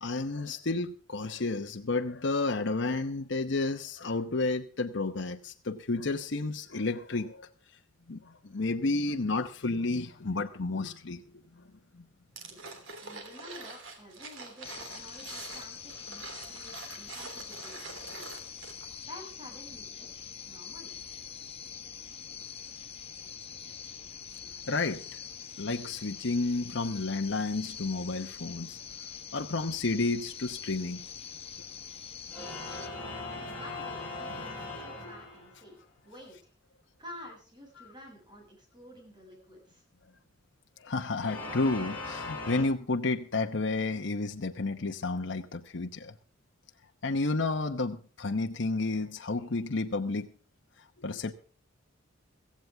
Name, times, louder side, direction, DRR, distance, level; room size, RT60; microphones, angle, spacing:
voice 1, 0.0-7.5 8.1-11.2 11.5-11.6 11.9-12.1 24.7-25.2 25.6-28.8 29.3-31.0 40.8-46.1 47.0-50.3 51.0-51.3, left 3 dB, 65° left, 4 dB, 0.9 m, -31 dB
sound 1, 12.4-19.0 19.3-19.4, right 3 dB, 80° right, 3.1 m, -45 dB
voice 2, 12.5-20.9 32.3-36.5 37.0-39.8, left 1 dB, 25° right, 1 dB, 6.9 m, -51 dB
sound 2, 14.6-32.9, left 7 dB, 30° left, 1.1 m, -44 dB
sound 3, 32.3-35.7 41.2-42.6, left 3 dB, 10° left, 6.7 m, -39 dB
16.0 x 15.5 x 3.5 m, 0.39 s
head